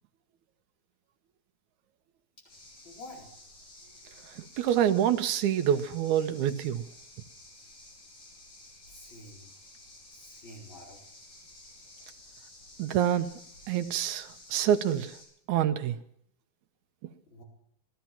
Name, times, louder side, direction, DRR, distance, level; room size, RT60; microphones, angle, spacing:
sound 1, 2.5-15.3, left 2 dB, 80° left, 5.9 m, -52 dB
voice 1, 2.8-3.3 4.5-4.6 8.8-9.5 10.1-11.0 17.3-17.4, left 1 dB, 40° left, 5.2 m, -48 dB
voice 2, 4.3-6.8 12.8-13.4 13.7-15.2 15.5-16.0, right 10 dB, 80° right, 2.3 m, -27 dB
16.5 x 12.5 x 5.9 m
omnidirectional pair, 3.4 m